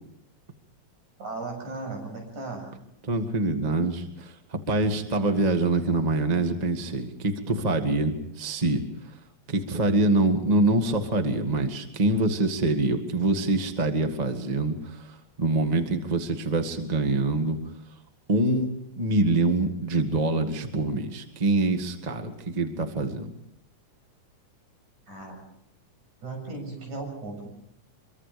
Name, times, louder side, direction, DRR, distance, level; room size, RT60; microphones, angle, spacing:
voice 1, 1.2-2.7 25.1-25.4 26.2-27.5, right 3 dB, 80° right, 2 dB, 8.7 m, -36 dB
voice 2, 3.0-9.2 9.5-17.6 18.3-23.3, right 2 dB, 20° right, 6 dB, 1.4 m, -25 dB
25.5 x 23.5 x 5.2 m, 0.75 s
omnidirectional pair, 3.4 m